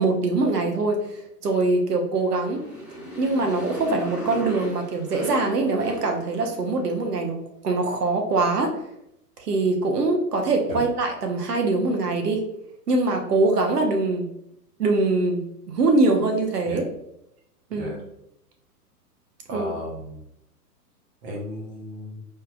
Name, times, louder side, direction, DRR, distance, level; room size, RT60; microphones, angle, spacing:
voice 1, 0.0-2.6 3.2-7.4 7.6-8.8 9.4-12.4 12.9-14.3 14.8-16.8 17.7-17.9 19.5-19.7, right 3 dB, 75° right, 3 dB, 1.0 m, -23 dB
Motorcycle, 2.2-6.8, equal, ahead, 1.3 m, -38 dB
voice 2, 17.7-18.0 19.5-20.2 21.2-22.2, equal, 25° right, 0 dB, 0.8 m, -35 dB
4.7 x 3.3 x 2.3 m, 0.79 s
hypercardioid pair, 120°, 47 cm